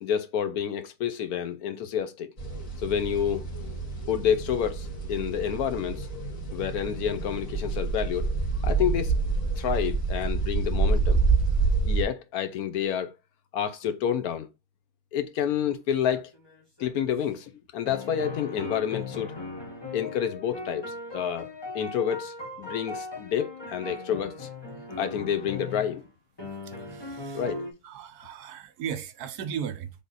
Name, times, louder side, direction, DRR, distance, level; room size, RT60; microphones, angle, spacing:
voice 1, 0.0-2.3 2.8-3.4 4.1-6.1 6.5-8.3 8.6-9.1 9.6-11.2 11.8-13.1 13.5-14.5 15.1-16.3 16.8-19.4 19.9-21.5 21.7-24.5 25.0-26.0 27.3-27.6, left 9 dB, 70° left, 0.9 m, -29 dB
sound 1, 2.4-12.0, right 4 dB, 50° left, 2.0 m, -27 dB
sound 2, 16.1-17.1 17.9-26.1 26.4-27.7, left 3 dB, 25° left, 0.6 m, -39 dB
voice 2, 26.5-27.4 27.8-29.9, right 8 dB, 70° right, 1.1 m, -37 dB
3.7 x 3.6 x 3.9 m
omnidirectional pair, 1.9 m